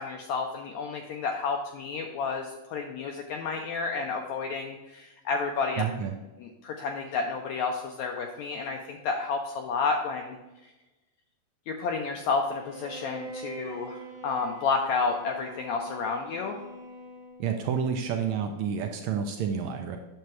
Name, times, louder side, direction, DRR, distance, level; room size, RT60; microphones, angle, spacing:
voice 1, 0.0-5.8 6.4-10.4 11.7-14.0 14.2-16.6, left 4 dB, 85° left, 3 dB, 1.6 m, -31 dB
voice 2, 5.8-6.1 17.4-20.0, right 7 dB, 80° right, 5 dB, 1.6 m, -29 dB
Bowed string instrument, 12.5-17.6, right 1 dB, 55° right, 1.1 m, -44 dB
9.0 x 6.8 x 3.2 m, 1.1 s
omnidirectional pair, 3.8 m